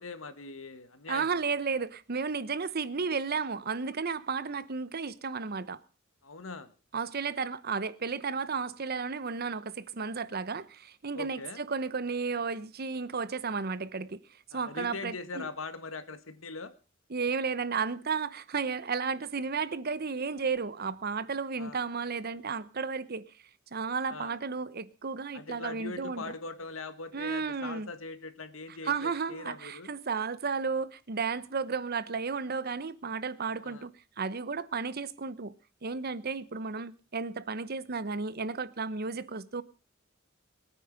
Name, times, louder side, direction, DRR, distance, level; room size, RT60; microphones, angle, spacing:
voice 1, 0.0-1.4 6.2-6.7 11.1-11.6 14.5-16.7 21.6-21.8 24.1-24.4 25.3-29.9 33.6-33.9, left 3 dB, 90° left, 1.6 m, -41 dB
voice 2, 1.1-5.8 6.9-14.2 14.5-15.4 17.1-23.2 23.7-26.3 27.1-27.9 28.8-33.9 34.2-35.5 35.8-39.6, right 5 dB, 50° right, 0.9 m, -33 dB
21.5 x 9.3 x 5.2 m
head